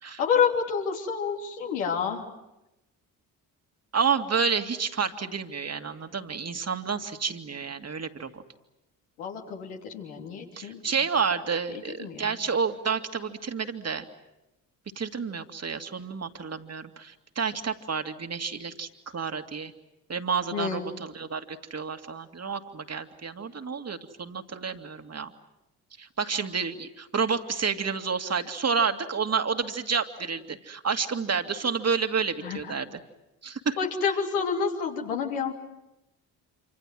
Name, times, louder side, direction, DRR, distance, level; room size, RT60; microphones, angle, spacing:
voice 1, 0.2-2.3 9.2-10.8 11.7-12.4 20.5-20.9 32.4-32.6 33.8-35.5, left 6 dB, 80° left, 1 dB, 3.2 m, -28 dB
voice 2, 3.9-8.4 10.6-14.0 15.0-19.7 20.1-25.3 26.0-33.0 33.4-33.8, right 6 dB, 35° right, 7 dB, 2.3 m, -30 dB
27.0 x 26.0 x 7.7 m, 0.94 s
hypercardioid pair, 50°, 45 cm